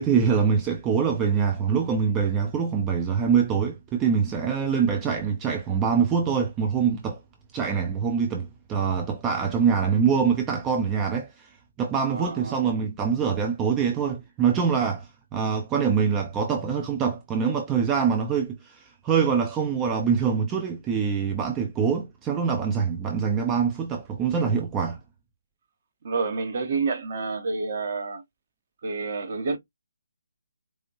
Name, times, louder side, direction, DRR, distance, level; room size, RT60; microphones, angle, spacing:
voice 1, 0.0-7.2 7.5-11.5 11.8-25.0, right 6 dB, 15° right, 0.5 m, -24 dB
voice 2, 12.1-12.5 26.0-28.2 28.8-29.6, right 4 dB, 40° right, 1.0 m, -28 dB
4.7 x 2.6 x 2.8 m
figure-of-eight pair, 145°, 0 cm